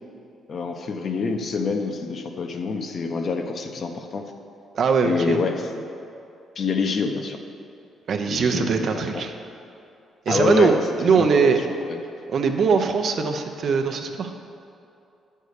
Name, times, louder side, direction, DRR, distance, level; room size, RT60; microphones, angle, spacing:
voice 1, 0.5-4.2 5.0-5.8 6.6-7.4 8.3-9.2 10.3-10.8 11.0-11.5 11.9-12.0, left 4 dB, 50° left, 5 dB, 0.8 m, -26 dB
voice 2, 4.7-5.4 8.1-9.3 10.3-11.6 12.3-14.3, right 5 dB, 60° right, 5 dB, 0.7 m, -21 dB
8.2 x 5.6 x 6.5 m, 2.6 s
cardioid pair, 90°, 0 cm